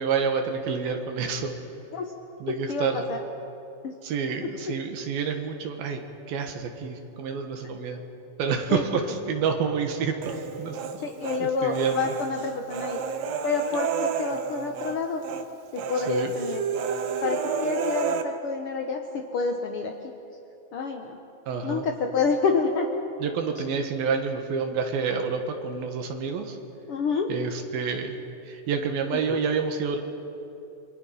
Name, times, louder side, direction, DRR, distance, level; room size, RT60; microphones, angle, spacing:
voice 1, 0.0-1.5 2.4-3.0 4.0-6.0 6.3-8.0 8.4-10.3 10.6-11.0 11.4-12.1 16.1-16.3 21.5-21.9 23.2-26.6 27.3-28.2 28.5-30.0, right 5 dB, 80° right, 4 dB, 3.3 m, -28 dB
voice 2, 2.5-3.2 3.8-3.9 8.7-8.8 11.0-13.0 13.4-15.2 15.7-16.6 17.2-19.0 19.3-19.9 20.7-21.2 21.6-22.9 26.9-27.3, left 4 dB, 80° left, 3 dB, 1.2 m, -28 dB
Human voice, 10.2-11.4 11.7-15.0 15.2-15.4 15.8-18.2, right 6 dB, 65° right, 1.8 m, -30 dB
28.0 x 22.5 x 5.6 m, 2.8 s
omnidirectional pair, 4.2 m